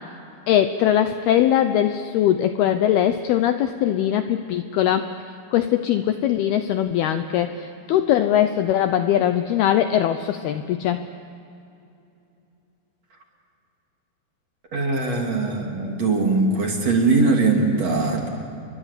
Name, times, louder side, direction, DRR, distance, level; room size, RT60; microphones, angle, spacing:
voice 1, 0.5-5.1 5.5-11.0, left 11 dB, 90° left, 9 dB, 2.2 m, -21 dB
voice 2, 14.7-18.3, right 3 dB, 40° right, 1 dB, 3.2 m, -21 dB
29.0 x 24.0 x 8.3 m, 2.7 s
omnidirectional pair, 5.6 m